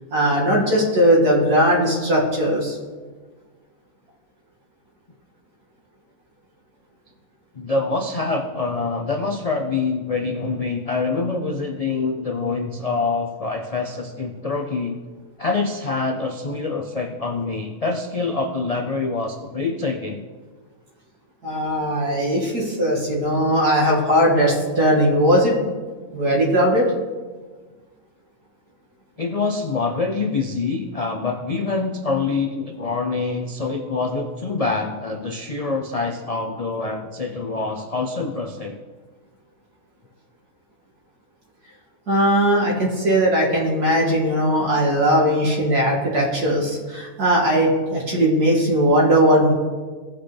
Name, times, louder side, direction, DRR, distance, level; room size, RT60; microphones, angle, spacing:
voice 1, 0.1-2.8 21.4-25.5 26.1-26.9 42.1-49.5, equal, 85° right, -5 dB, 2.9 m, -19 dB
voice 2, 7.5-15.0 15.4-20.2 29.2-38.8, left 3 dB, 60° left, 3 dB, 0.3 m, -25 dB
17.0 x 5.8 x 3.4 m, 1.4 s
omnidirectional pair, 1.6 m